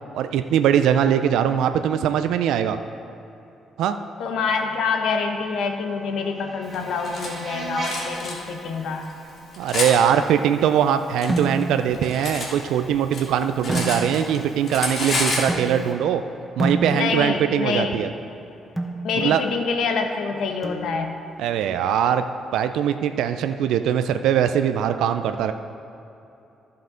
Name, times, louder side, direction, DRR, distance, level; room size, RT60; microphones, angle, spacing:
voice 1, 0.1-2.8 3.8-4.0 9.6-16.2 16.6-18.1 19.2-19.4 21.4-22.2 22.5-25.5, right 9 dB, 85° right, 9 dB, 0.3 m, -21 dB
voice 2, 4.2-9.1 16.9-18.0 19.0-21.1, left 5 dB, 75° left, 5 dB, 0.9 m, -26 dB
sound 1, 5.5-10.5, right 2 dB, 45° right, 2.3 m, -38 dB
Cutlery silverware, 6.7-7.3 7.8-8.3 9.0-9.9 10.8-12.5 12.8-14.4 14.6-15.5, left 2 dB, 55° left, 2.1 m, -28 dB
sound 2, 11.3-11.9 13.7-14.4 15.5-16.1 16.6-17.4 18.8-19.1 20.6-21.2, right 1 dB, 5° right, 1.0 m, -28 dB
14.5 x 5.5 x 3.8 m, 2.9 s
cardioid pair, 90°, 0 cm